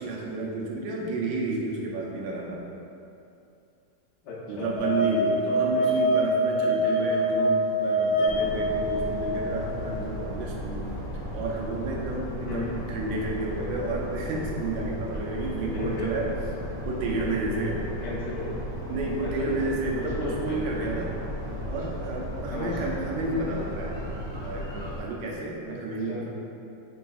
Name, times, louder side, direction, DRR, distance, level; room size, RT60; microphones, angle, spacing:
voice 1, 0.0-2.6 4.5-10.9 11.3-16.3 16.8-17.8 18.9-21.1 21.6-24.1 24.4-26.3, right 2 dB, 85° right, -2 dB, 1.3 m, -31 dB
voice 2, 4.2-4.7 5.6-5.8 6.9-7.1 12.4-12.8 15.1-16.1 18.0-18.6 19.2-19.5 20.0-20.6 22.5-22.8 25.7-25.8 26.1-26.3, left 3 dB, 65° left, -8 dB, 1.4 m, -36 dB
sound 1, 4.8-9.8, equal, 85° left, 0.7 m, -25 dB
sound 2, 8.2-25.0, equal, 45° left, 0.5 m, -35 dB
3.9 x 3.9 x 2.4 m, 2.7 s
omnidirectional pair, 2.1 m